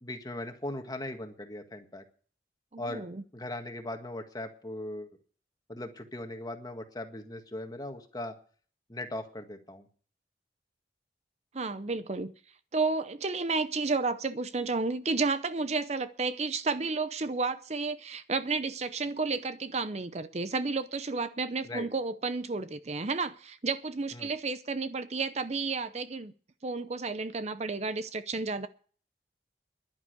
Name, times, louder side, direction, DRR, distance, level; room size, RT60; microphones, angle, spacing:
voice 1, 0.0-2.0 2.8-3.1 3.3-5.1 5.7-8.3 8.9-9.9 21.6-21.9 24.1-24.3, left 1 dB, 20° left, 6 dB, 1.7 m, -39 dB
voice 2, 2.7-3.2 11.5-12.3 12.7-26.3 26.6-28.7, right 4 dB, 40° right, 12 dB, 0.6 m, -32 dB
11.0 x 9.8 x 8.1 m, 0.43 s
head